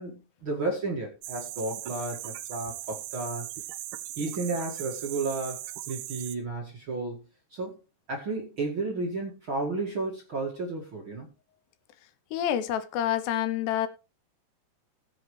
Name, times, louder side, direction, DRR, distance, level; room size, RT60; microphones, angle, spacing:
voice 1, 0.0-3.5 4.2-7.2 7.5-7.8 8.1-11.3, right 3 dB, 40° right, 1.9 m, -32 dB
sound 1, 1.2-6.4, right 14 dB, 80° right, 2.8 m, -39 dB
voice 2, 12.3-13.9, left 11 dB, 80° left, 2.9 m, -27 dB
19.5 x 7.5 x 3.2 m
omnidirectional pair, 5.0 m